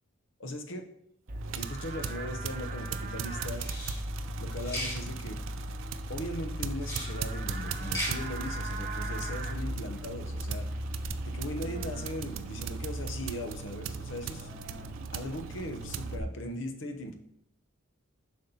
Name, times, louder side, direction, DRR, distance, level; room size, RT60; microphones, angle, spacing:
voice 1, 0.4-0.9 1.5-3.7 4.4-5.4 6.1-10.7 11.2-14.5 15.1-17.2, left 1 dB, 65° left, 6 dB, 0.8 m, -39 dB
Livestock farm animals working animals, 1.3-16.2, right 1 dB, 40° right, 0.7 m, -37 dB
sound 1, 1.4-16.2, right 8 dB, 65° right, 0.4 m, -41 dB
sound 2, 3.6-4.0 4.6-5.0 6.8-7.1 7.7-8.1, equal, 15° left, 2.2 m, -36 dB
7.5 x 5.2 x 2.8 m, 0.72 s
head